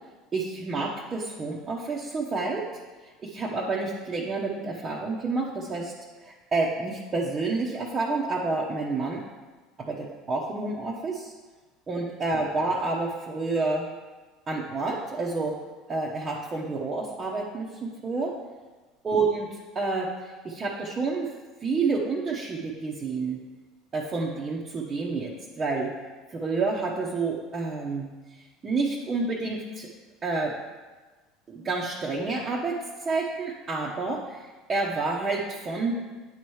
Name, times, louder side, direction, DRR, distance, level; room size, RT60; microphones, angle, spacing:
voice 1, 0.3-2.7 3.0-5.9 6.2-9.2 9.8-11.3 11.9-13.9 14.5-15.6 15.9-18.3 19.0-21.3 21.6-23.4 23.9-25.9 26.3-28.1 28.6-29.9 30.2-30.5 31.5-36.0, right 3 dB, 30° right, -4 dB, 0.9 m, -29 dB
9.1 x 3.1 x 4.7 m, 1.3 s
hypercardioid pair, 85°, 0 cm